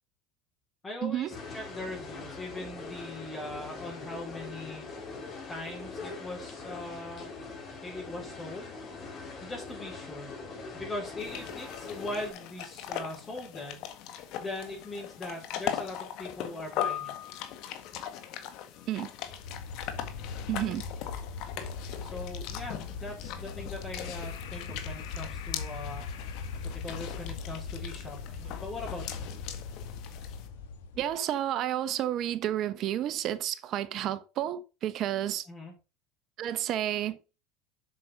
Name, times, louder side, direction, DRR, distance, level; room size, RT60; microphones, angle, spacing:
voice 1, 0.8-4.9 5.5-7.3 7.8-8.8 9.4-10.3 10.7-17.2 22.0-26.0 26.7-29.3 35.5-35.7, left 2 dB, 20° left, 4.5 m, -40 dB
sound 1, 1.3-12.3, left 3 dB, 35° left, 4.5 m, -42 dB
sound 2, 11.2-30.5, left 10 dB, 60° left, 1.7 m, -40 dB
sound 3, 19.2-31.2, left 5 dB, 80° left, 2.0 m, -40 dB
voice 2, 20.5-20.8 30.9-35.5 36.4-37.2, right 12 dB, 50° right, 1.1 m, -31 dB
7.7 x 6.5 x 5.1 m
supercardioid pair, 105°, 0 cm